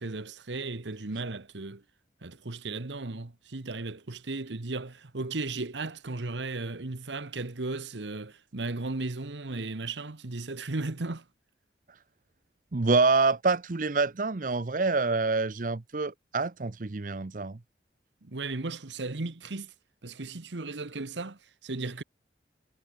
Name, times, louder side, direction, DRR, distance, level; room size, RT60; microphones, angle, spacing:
voice 1, 0.0-1.8 2.2-11.2 18.2-19.7 20.0-22.0, right 3 dB, 80° right, 1.2 m, -35 dB
voice 2, 12.7-17.6, right 3 dB, 45° right, 0.7 m, -26 dB
head